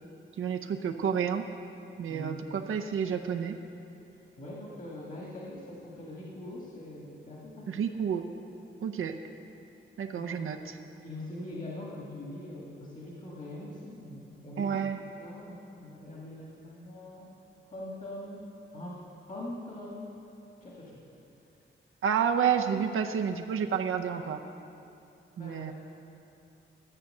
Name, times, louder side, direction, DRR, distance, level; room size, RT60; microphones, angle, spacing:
voice 1, 0.4-1.5 2.0-3.6 7.7-8.3 8.8-9.2 10.0-10.8 14.6-15.0 22.0-24.4 25.4-25.7, right 7 dB, 80° right, 4 dB, 0.6 m, -30 dB
voice 2, 4.4-7.8 10.1-10.4 11.0-14.9 15.2-17.3 17.7-20.1 20.6-21.0 25.4-25.7, left 1 dB, 40° left, -4 dB, 1.7 m, -42 dB
13.0 x 8.2 x 6.6 m, 2.8 s
wide cardioid pair, 150°, 21 cm